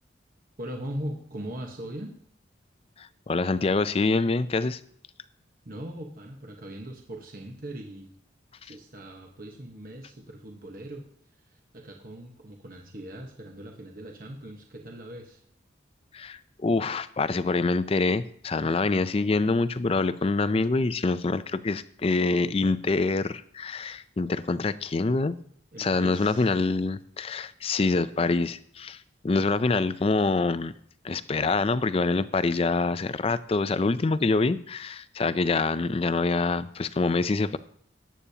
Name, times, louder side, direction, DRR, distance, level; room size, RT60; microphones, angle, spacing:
voice 1, 0.6-2.1 5.6-8.1 8.6-11.0 11.5-15.4 25.7-26.5, right 1 dB, 50° right, 2 dB, 1.1 m, -40 dB
voice 2, 3.0-4.8 16.1-25.4 25.8-30.7 31.0-37.6, left 3 dB, 30° left, 14 dB, 0.4 m, -25 dB
18.5 x 8.4 x 2.8 m, 0.63 s
head